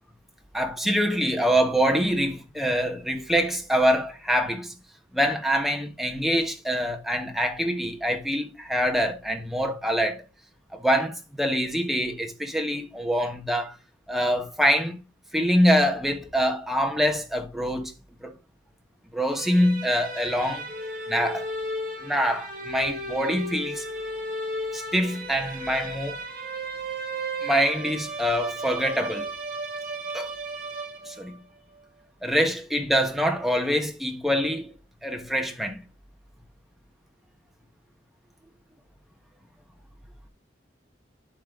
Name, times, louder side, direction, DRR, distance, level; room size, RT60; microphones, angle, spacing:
voice 1, 0.5-4.7 5.1-10.2 10.7-13.8 14.1-15.0 15.3-17.9 18.2-18.3 19.1-20.7 21.1-21.5 22.0-23.8 24.7-26.2 27.4-29.3 30.1-30.3 31.1-31.3 32.2-34.7 35.0-35.8, equal, ahead, 1.3 m, -25 dB
sound 1, 19.3-31.4, right 1 dB, 45° right, 3.0 m, -34 dB
11.5 x 4.4 x 3.7 m
head